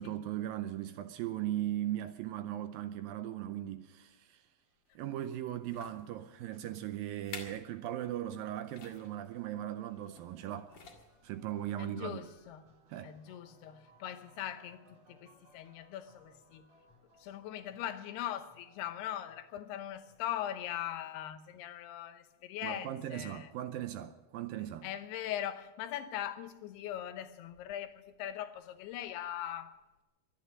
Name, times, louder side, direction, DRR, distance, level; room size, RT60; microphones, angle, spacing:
voice 1, 0.0-4.4 5.0-10.7 11.2-12.2 12.9-13.2 22.6-24.9, right 12 dB, 80° right, 2.2 m, -38 dB
sound 1, 4.9-5.1 5.6-6.1 6.7-6.8 7.2-7.7 8.0-8.2 8.7-9.1 10.1-10.4 10.7-11.3 11.9-12.0, left 5 dB, 45° left, 2.4 m, -49 dB
sound 2, 9.0-20.8, equal, 45° right, 5.3 m, -65 dB
voice 2, 11.8-12.7 13.0-14.8 15.1-16.7 17.2-23.5 24.8-29.8, left 11 dB, 85° left, 3.0 m, -40 dB
23.5 x 10.5 x 5.3 m
omnidirectional pair, 4.5 m